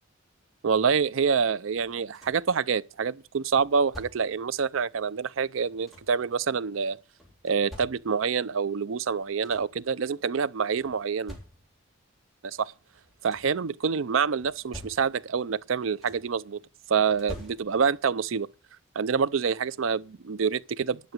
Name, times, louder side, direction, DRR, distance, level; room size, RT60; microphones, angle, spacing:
voice 1, 0.6-7.0 7.4-11.4 12.4-12.7 13.2-16.6 16.9-18.5 19.0-21.1, right 6 dB, 75° right, 0.5 m, -27 dB
sound 1, 1.8-2.6 3.5-4.5 5.4-6.3 7.2-8.4 9.0-9.1 9.3-9.9 10.8-11.9 12.9-13.7 14.4-15.4 15.7-16.4 17.1-18.1 19.4-19.5 20.0-20.2, equal, ahead, 3.5 m, -47 dB
11.0 x 6.0 x 8.9 m
head